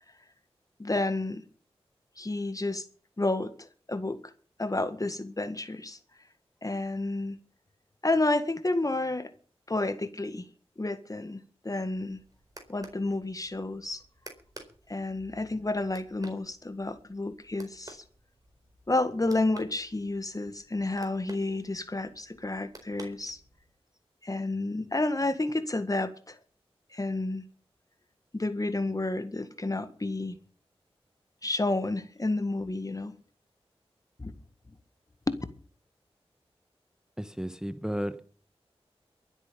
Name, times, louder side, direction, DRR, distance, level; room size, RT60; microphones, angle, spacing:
voice 1, 0.8-1.4 2.2-2.9 3.2-4.2 4.6-6.0 6.6-7.4 8.0-9.3 9.7-10.4 10.8-12.2 12.7-14.0 14.9-18.0 18.9-23.4 24.2-26.4 26.9-27.4 28.3-30.4 31.4-33.1 34.2-34.3 35.3-35.4, left 2 dB, 35° left, 1.8 m, -30 dB
sound 1, 11.9-23.8, right 2 dB, 35° right, 4.4 m, -53 dB
voice 2, 37.2-38.2, equal, 5° right, 1.2 m, -33 dB
23.0 x 8.2 x 5.3 m
cardioid pair, 45°, 11 cm